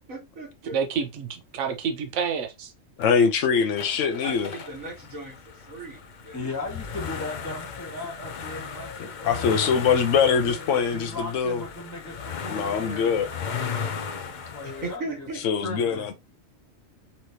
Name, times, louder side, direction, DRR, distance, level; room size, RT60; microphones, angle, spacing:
voice 1, 0.1-0.7 3.9-6.7 14.6-15.4, right 2 dB, 85° right, 2.7 m, -38 dB
voice 2, 0.7-2.7, right 6 dB, 70° right, 1.1 m, -28 dB
voice 3, 3.0-4.5 9.0-11.6 12.5-13.3 15.4-16.1, left 6 dB, 70° left, 1.1 m, -23 dB
sound 1, 3.8-15.0, left 6 dB, 50° left, 0.6 m, -36 dB
voice 4, 6.3-9.7 10.4-13.1 14.1-15.3 15.6-16.1, left 2 dB, 15° left, 1.3 m, -37 dB
5.8 x 3.2 x 2.7 m
omnidirectional pair, 1.4 m